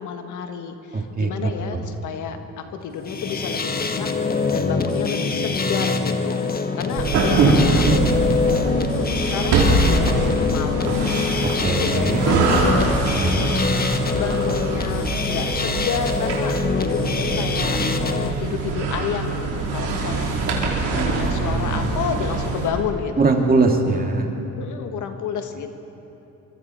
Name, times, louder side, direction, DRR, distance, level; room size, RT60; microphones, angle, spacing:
voice 1, 0.0-6.4 6.8-8.1 8.8-11.1 11.6-12.9 13.4-13.6 14.1-20.3 20.9-23.3 24.6-25.8, left 7 dB, 75° left, 6 dB, 1.6 m, -30 dB
voice 2, 0.9-1.8 7.8-8.0 11.6-12.3 13.2-13.5 20.9-21.9 23.2-24.3, right 3 dB, 30° right, 2 dB, 2.5 m, -22 dB
sound 1, 2.9-18.3, left 4 dB, 30° left, 1.4 m, -24 dB
sound 2, 6.9-22.7, right 3 dB, 90° right, 3.9 m, -23 dB
24.5 x 24.0 x 4.5 m, 3.0 s
cardioid pair, 90°, 30 cm